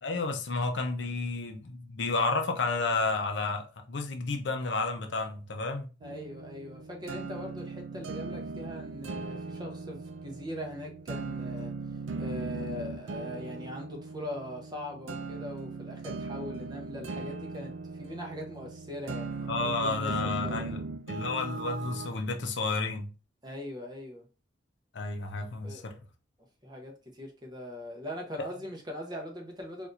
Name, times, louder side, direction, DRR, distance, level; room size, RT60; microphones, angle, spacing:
voice 1, 0.0-5.9 19.5-20.8 21.1-23.1 24.9-25.9, left 3 dB, 70° left, 0.6 m, -31 dB
voice 2, 6.0-11.7 12.1-20.7 23.4-24.2 25.6-26.0 26.6-29.9, left 1 dB, 20° right, 0.8 m, -41 dB
sound 1, 6.0-22.1, right 3 dB, 85° right, 0.4 m, -39 dB
4.2 x 2.5 x 2.4 m
head